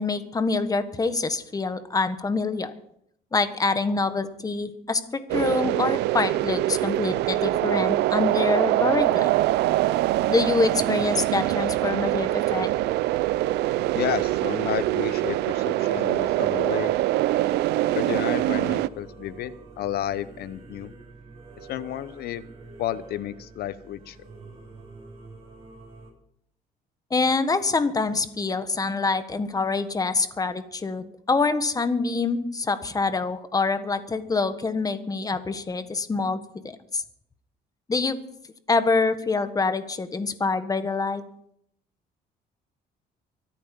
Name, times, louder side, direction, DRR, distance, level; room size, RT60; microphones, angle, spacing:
voice 1, 0.0-2.7 3.3-9.3 10.3-12.7 27.1-36.4 36.9-37.0 37.9-38.2 38.7-41.2, left 4 dB, 20° left, 11 dB, 1.4 m, -25 dB
sound 1, 5.3-18.9, right 15 dB, 80° right, 0.5 m, -24 dB
voice 2, 13.9-16.9 17.9-20.9 21.7-22.5 22.8-24.2, left 12 dB, 70° left, 16 dB, 0.9 m, -31 dB
Singing / Musical instrument, 18.4-26.1, right 3 dB, 35° right, 6.6 m, -46 dB
24.5 x 8.9 x 5.3 m, 0.72 s
cardioid pair, 110°, 17 cm